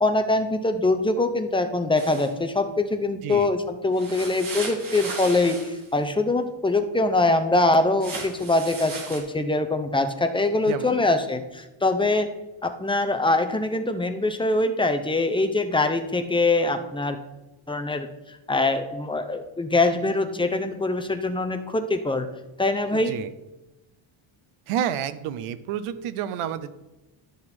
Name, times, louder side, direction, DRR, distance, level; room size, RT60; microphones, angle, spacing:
voice 1, 0.0-12.3 12.6-17.2 17.7-22.3 22.6-23.1, left 2 dB, 10° left, 7 dB, 0.6 m, -23 dB
sound 1, 2.0-2.3 3.9-5.9 8.0-9.2, right 3 dB, 40° right, 2.7 m, -36 dB
voice 2, 10.6-11.0 22.9-23.3 24.7-26.7, right 9 dB, 85° right, 14 dB, 0.8 m, -30 dB
12.0 x 6.5 x 4.3 m, 1.0 s
cardioid pair, 145°, 50 cm